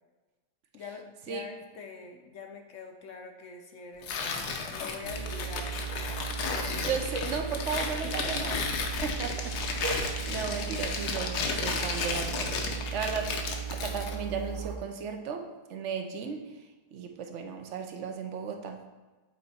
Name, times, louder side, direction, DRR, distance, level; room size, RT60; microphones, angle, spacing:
voice 1, 0.7-5.8 7.9-8.5, left 5 dB, 60° left, 3 dB, 0.9 m, -44 dB
Tearing, 4.0-14.2, left 5 dB, 80° left, 1.3 m, -34 dB
sound 1, 5.0-14.8, right 8 dB, 90° right, 1.2 m, -37 dB
voice 2, 6.7-8.6 9.0-13.3 13.7-16.4 16.9-18.9, right 5 dB, 60° right, 5 dB, 0.9 m, -35 dB
7.7 x 4.0 x 4.2 m, 1.2 s
omnidirectional pair, 1.7 m